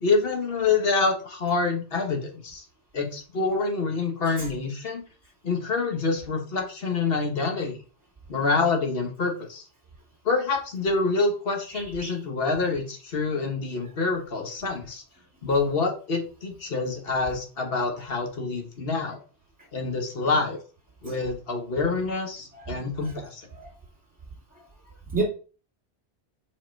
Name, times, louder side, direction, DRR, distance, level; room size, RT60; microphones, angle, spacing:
voice 1, 0.0-2.6 2.9-5.0 5.4-7.8 8.3-9.6 10.2-15.0 15.4-19.2 19.7-20.6 21.0-23.5, left 4 dB, 60° left, 3 dB, 1.4 m, -26 dB
voice 2, 11.7-12.1 21.0-21.1 22.5-22.6 23.6-23.7 25.1-25.2, right 4 dB, 5° right, -2 dB, 1.9 m, -30 dB
5.0 x 4.2 x 4.5 m, 0.38 s
omnidirectional pair, 1.1 m